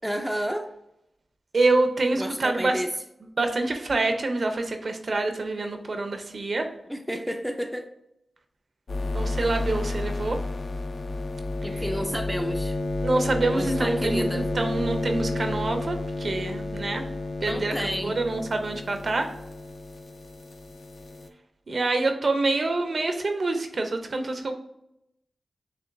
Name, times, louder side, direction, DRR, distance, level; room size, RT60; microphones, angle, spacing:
voice 1, 0.0-0.7 2.1-2.9 6.9-7.9 11.6-12.8 13.5-14.5 17.4-18.2, equal, 5° right, 4 dB, 0.3 m, -31 dB
voice 2, 1.5-2.8 3.4-6.7 9.1-10.4 11.7-11.8 13.0-17.0 17.4-17.7 18.0-19.3 21.7-24.5, right 2 dB, 55° right, 6 dB, 0.5 m, -26 dB
sound 1, 8.9-21.3, left 2 dB, 60° left, 0.4 m, -31 dB
6.7 x 3.0 x 2.5 m, 0.82 s
wide cardioid pair, 125°, 0 cm